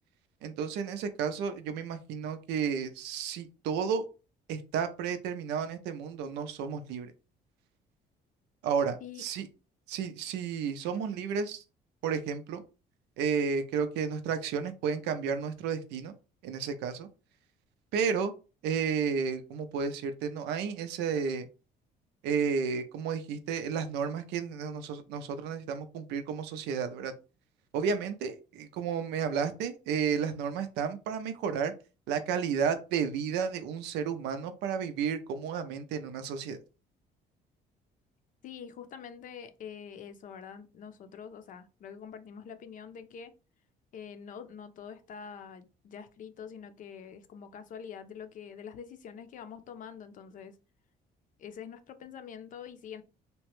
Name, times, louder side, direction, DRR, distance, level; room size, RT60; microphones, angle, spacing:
voice 1, 0.4-4.1 4.5-7.1 8.6-9.5 9.9-11.6 12.0-12.6 13.2-16.1 16.4-17.1 17.9-18.3 18.6-21.5 22.2-27.1 27.7-31.7 32.1-36.6, right 6 dB, 90° right, 0.5 m, -32 dB
voice 2, 38.4-43.3 43.9-50.5 51.4-53.0, left 7 dB, 50° left, 0.5 m, -45 dB
2.9 x 2.2 x 2.9 m
cardioid pair, 110°, 17 cm